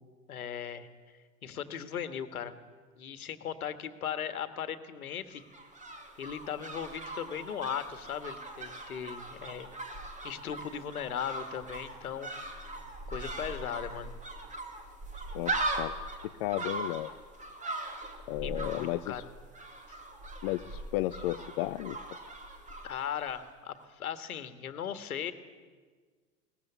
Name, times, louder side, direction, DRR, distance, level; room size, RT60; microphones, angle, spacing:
voice 1, 0.3-0.9 1.4-2.5 3.0-5.4 6.2-9.7 10.2-12.8 13.1-14.1 18.4-19.2 19.9-20.0 22.8-25.3, left 8 dB, 65° left, 11 dB, 1.8 m, -38 dB
sound 1, 5.3-23.5 23.7-23.8, right 2 dB, 15° right, 2.7 m, -40 dB
voice 2, 15.3-15.9 16.4-17.1 18.3-19.2 20.4-22.0, left 16 dB, 40° left, 10 dB, 0.7 m, -33 dB
22.0 x 18.5 x 9.7 m, 1.5 s
figure-of-eight pair, 90°, 46 cm